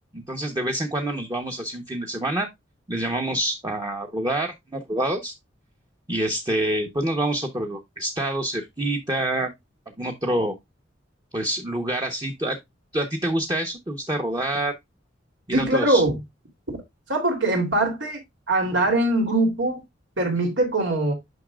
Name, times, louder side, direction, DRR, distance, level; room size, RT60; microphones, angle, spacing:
voice 1, 0.1-2.5 2.9-5.3 6.1-9.5 10.0-10.5 11.3-12.6 12.9-14.7 15.5-16.0, right 1 dB, 20° right, 1.0 m, -27 dB
voice 2, 15.5-16.2 16.7-16.8 17.1-18.2 18.5-19.8 20.2-21.1, right 2 dB, 80° right, 3.2 m, -22 dB
9.3 x 5.9 x 2.4 m
head